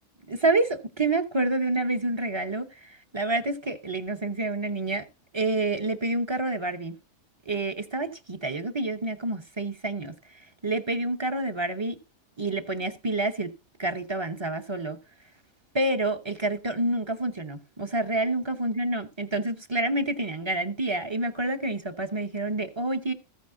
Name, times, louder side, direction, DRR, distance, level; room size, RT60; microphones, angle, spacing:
voice 1, 0.3-5.0 5.3-6.9 7.5-10.1 10.6-12.0 12.4-13.5 13.8-15.0 15.7-23.1, right 2 dB, 30° right, 0.5 m, -28 dB
14.5 x 9.2 x 2.6 m
omnidirectional pair, 1.6 m